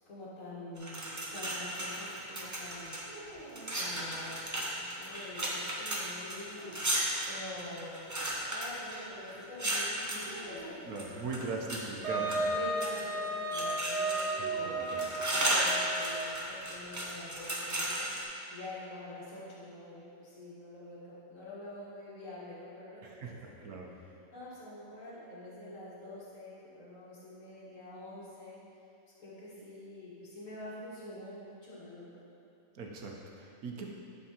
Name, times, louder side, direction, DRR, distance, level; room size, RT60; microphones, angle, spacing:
voice 1, 0.1-3.1 3.7-8.1 8.5-11.6 12.4-18.1 18.5-23.7 24.0-28.6 29.2-32.2, left 1 dB, 65° left, -8 dB, 2.0 m, -46 dB
sound 1, 0.8-3.1 3.5-10.3 11.0-11.8 12.3-13.1 13.5-14.4 14.8-18.2, right 1 dB, 20° right, 0.5 m, -35 dB
sound 2, 3.1-4.6 6.3-7.4 10.2-11.0 14.3-15.9, right 1 dB, 40° right, 1.7 m, -50 dB
voice 2, 10.9-12.4 23.0-23.9 32.7-33.9, right 3 dB, 85° right, 0 dB, 1.3 m, -40 dB
Wind instrument woodwind instrument, 12.0-16.4, right 2 dB, 55° right, 1.5 m, -34 dB
11.0 x 4.4 x 2.9 m, 2.7 s
omnidirectional pair, 1.5 m